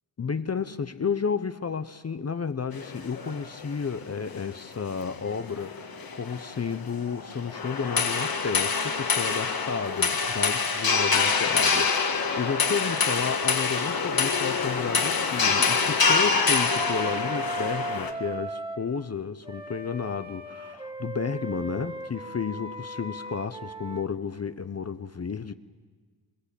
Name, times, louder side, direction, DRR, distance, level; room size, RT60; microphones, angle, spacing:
voice 1, 0.2-25.5, left 6 dB, 35° left, 0.7 m, -32 dB
sound 1, 2.7-18.1, left 5 dB, 50° left, 1.8 m, -26 dB
Wind instrument woodwind instrument, 16.2-18.9 19.4-24.0, right 1 dB, 10° right, 1.7 m, -36 dB
27.0 x 22.0 x 8.4 m
wide cardioid pair, 150°, 45 cm